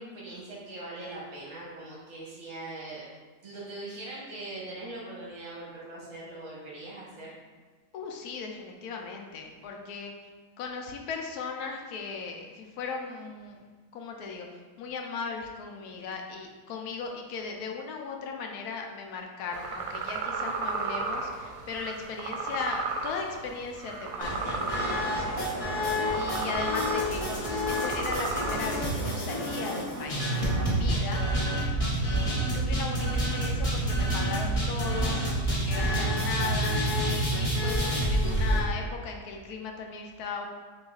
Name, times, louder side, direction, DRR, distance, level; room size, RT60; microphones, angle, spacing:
voice 1, 0.0-3.0 3.4-7.4, right 2 dB, 50° right, -6 dB, 1.4 m, -41 dB
voice 2, 7.9-10.1 10.6-13.6 13.9-14.5 14.8-25.5 26.1-31.3 32.0-40.5, left 5 dB, 75° left, 2 dB, 1.0 m, -37 dB
sound 1, 19.5-28.7, right 4 dB, 80° right, 1.1 m, -34 dB
sound 2, 24.2-38.6, right 1 dB, 30° left, 0.7 m, -28 dB
6.1 x 3.1 x 2.3 m, 1.4 s
omnidirectional pair, 1.8 m